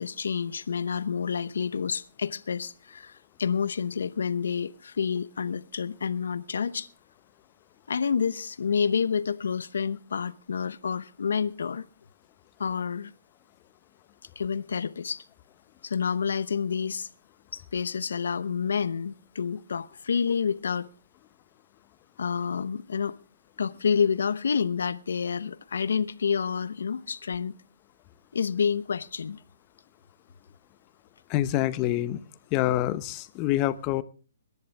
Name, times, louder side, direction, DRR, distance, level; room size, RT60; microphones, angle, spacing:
voice 1, 0.0-6.9 7.9-11.9 12.6-13.1 14.4-15.2 15.8-17.1 17.5-20.9 22.2-23.2 23.6-27.5 28.3-29.4, left 6 dB, 75° left, 0.9 m, -29 dB
voice 2, 31.3-32.2 32.5-34.0, left 14 dB, 25° left, 0.8 m, -26 dB
22.5 x 10.5 x 3.5 m
hypercardioid pair, 155°, 0 cm